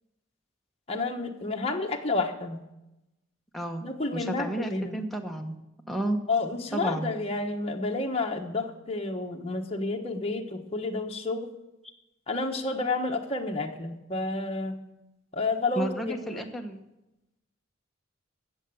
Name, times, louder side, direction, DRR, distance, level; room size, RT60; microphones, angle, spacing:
voice 1, 0.9-2.6 3.8-5.0 6.3-11.5 12.3-14.8 15.3-16.4, left 3 dB, 30° left, 1 dB, 1.2 m, -30 dB
voice 2, 3.5-3.8 4.1-5.5 5.9-6.2 6.7-7.1 15.8-16.8, right 1 dB, ahead, 1 dB, 1.2 m, -31 dB
16.5 x 6.9 x 7.1 m, 0.93 s
head